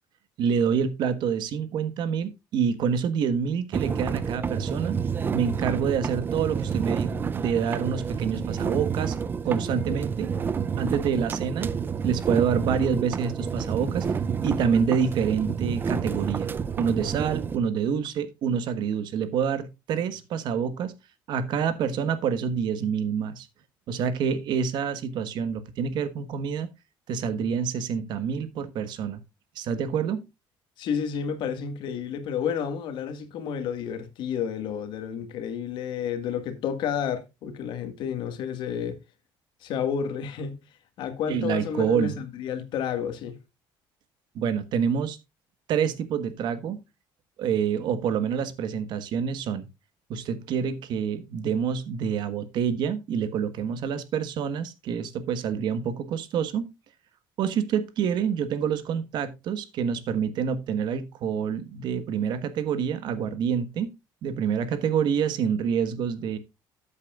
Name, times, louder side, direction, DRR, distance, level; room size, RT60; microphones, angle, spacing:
voice 1, 0.4-5.0 5.3-9.1 9.4-10.3 10.8-11.7 12.0-14.0 14.4-16.5 16.8-20.9 21.3-23.5 23.9-26.7 27.1-29.2 29.5-30.2 41.3-42.2 44.3-45.2 45.7-46.8 47.4-49.7 50.1-56.7 57.4-63.9 64.2-66.4, right 7 dB, 55° right, 1.4 m, -27 dB
sound 1, 3.7-17.6, right 6 dB, 25° right, 0.5 m, -29 dB
voice 2, 30.8-39.0 39.6-40.6 41.0-43.4, left 7 dB, 60° left, 1.7 m, -30 dB
13.5 x 8.4 x 2.4 m
cardioid pair, 160°, 9 cm